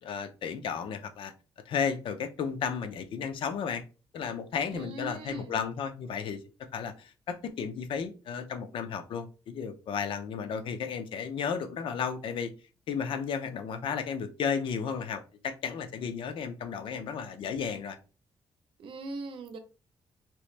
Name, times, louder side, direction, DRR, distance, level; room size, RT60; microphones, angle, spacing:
voice 1, 0.0-1.3 1.7-3.8 4.1-6.4 6.7-12.5 12.9-18.0, left 6 dB, 75° left, 0.5 m, -33 dB
voice 2, 4.7-5.6 18.8-19.6, right 2 dB, 75° right, 0.7 m, -40 dB
3.0 x 2.9 x 3.2 m
wide cardioid pair, 145°, 9 cm